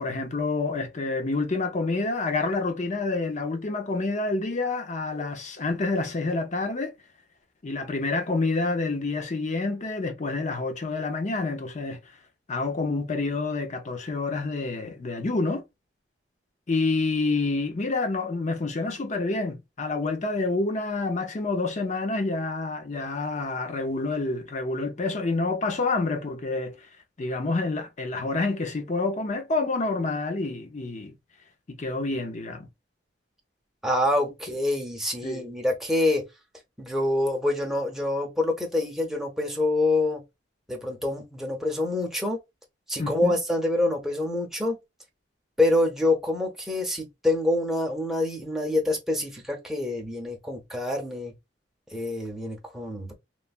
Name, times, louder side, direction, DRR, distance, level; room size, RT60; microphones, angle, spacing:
voice 1, 0.0-6.9 7.6-12.0 12.5-15.6 16.7-26.9 27.2-31.2 31.7-32.7 35.2-35.5 43.0-43.3, left 3 dB, 40° left, 0.7 m, -28 dB
voice 2, 33.8-36.2 36.8-40.2 40.7-42.4 42.9-44.8 45.6-51.3 51.9-53.1, left 2 dB, ahead, 0.7 m, -26 dB
3.2 x 2.1 x 2.4 m
head